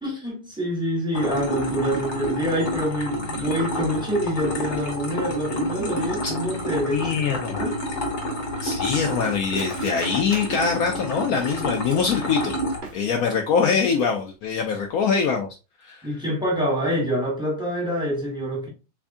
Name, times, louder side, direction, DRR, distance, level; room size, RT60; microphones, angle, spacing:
voice 1, 0.0-7.2 7.6-7.8 16.0-18.7, equal, 5° right, 0.8 m, -26 dB
sound 1, 1.1-12.8, equal, 55° left, 1.5 m, -29 dB
voice 2, 6.9-7.7 8.6-12.5 12.9-15.5 15.8-16.1, left 6 dB, 75° left, 0.8 m, -23 dB
Cutlery silverware, 7.8-12.2 12.7-13.4 13.7-13.8 14.1-14.5 14.8-15.0, right 3 dB, 45° right, 1.0 m, -43 dB
3.5 x 3.4 x 2.5 m
omnidirectional pair, 2.1 m